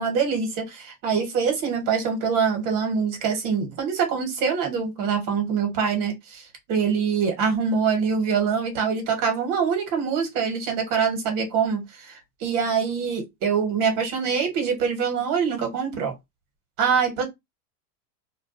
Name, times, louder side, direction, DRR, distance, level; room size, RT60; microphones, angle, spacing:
voice 1, 0.0-16.1 16.8-17.3, right 6 dB, 40° right, 1.1 m, -24 dB
2.3 x 2.2 x 2.4 m
hypercardioid pair, 120°, 50 cm